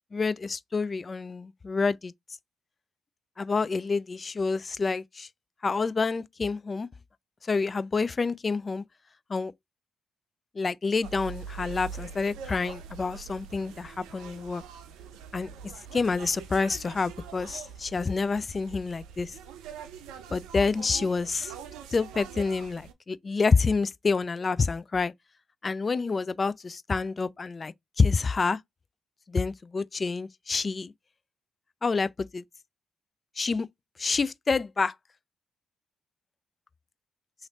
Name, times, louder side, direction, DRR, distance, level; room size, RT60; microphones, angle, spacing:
voice 1, 0.1-2.1 3.4-5.3 5.6-6.9 7.4-8.8 9.3-9.5 10.6-14.6 15.3-15.5 15.9-19.4 20.3-21.5 21.9-25.1 25.6-28.6 29.3-30.9 31.8-32.4 33.4-33.7 34.0-34.9, left 4 dB, 40° left, 0.3 m, -28 dB
sound 1, 11.0-22.9, right 7 dB, 80° right, 0.5 m, -44 dB
3.1 x 2.5 x 3.9 m
hypercardioid pair, 50°, 0 cm